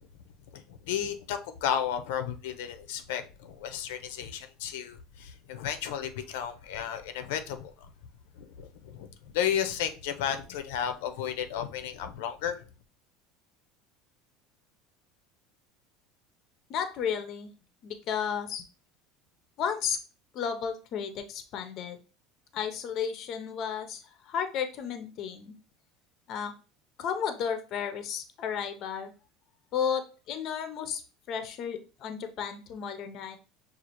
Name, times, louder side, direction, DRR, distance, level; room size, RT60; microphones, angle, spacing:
voice 1, 0.5-7.9 8.4-12.7, left 9 dB, 90° left, 0.5 m, -33 dB
voice 2, 16.7-17.5 17.8-18.6 19.6-20.0 20.3-22.0 22.5-25.5 26.3-26.5 27.0-29.1 29.7-31.0 31.3-33.4, left 7 dB, 40° left, 0.5 m, -33 dB
6.1 x 2.4 x 2.9 m
cardioid pair, 170°, 0 cm